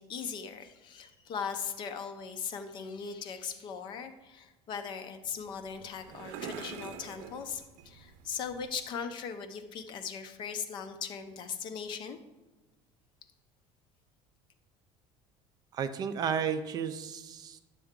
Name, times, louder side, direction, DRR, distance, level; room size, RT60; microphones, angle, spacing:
voice 1, 0.0-12.2, left 6 dB, 40° left, 8 dB, 0.6 m, -39 dB
sound 1, 5.2-8.8, right 8 dB, 65° right, 0.8 m, -46 dB
voice 2, 15.7-17.6, right 7 dB, 35° right, 10 dB, 0.4 m, -33 dB
10.5 x 6.8 x 3.7 m, 1.2 s
cardioid pair, 170°, 12 cm